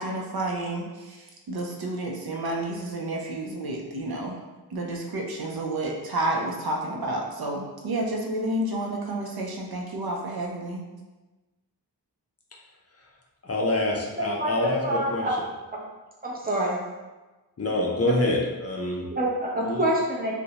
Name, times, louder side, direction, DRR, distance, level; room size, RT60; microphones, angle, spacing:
voice 1, 0.0-4.4 4.7-10.8, right 1 dB, 65° right, 0 dB, 0.5 m, -30 dB
voice 2, 13.4-15.3 17.6-19.1 19.6-19.8, left 1 dB, 40° left, -2 dB, 0.5 m, -26 dB
voice 3, 14.2-15.3 15.7-15.8 16.2-16.8 19.1-20.3, right 1 dB, 20° right, -4 dB, 0.6 m, -26 dB
2.5 x 2.1 x 2.7 m, 1.2 s
wide cardioid pair, 60°, 41 cm